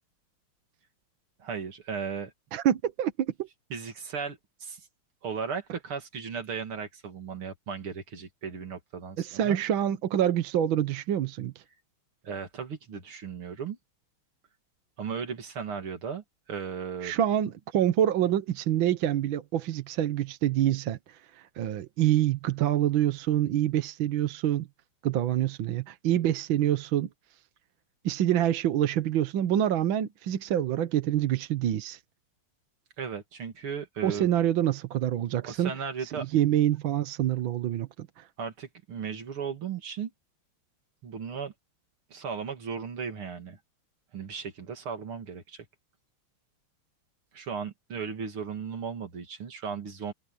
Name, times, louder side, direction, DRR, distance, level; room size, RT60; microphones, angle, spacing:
voice 1, 1.4-2.3 3.7-4.8 5.2-9.6 12.2-13.8 15.0-17.1 33.0-34.3 35.4-36.3 38.4-40.1 41.0-41.5 42.1-43.6 44.1-45.7 47.3-50.1, right 6 dB, 85° right, 3.4 m, -36 dB
voice 2, 2.5-3.5 9.2-11.6 17.0-24.7 25.0-27.1 28.0-32.0 34.0-35.7 36.0-38.3, right 11 dB, 70° right, 1.7 m, -26 dB
omnidirectional pair, 2.3 m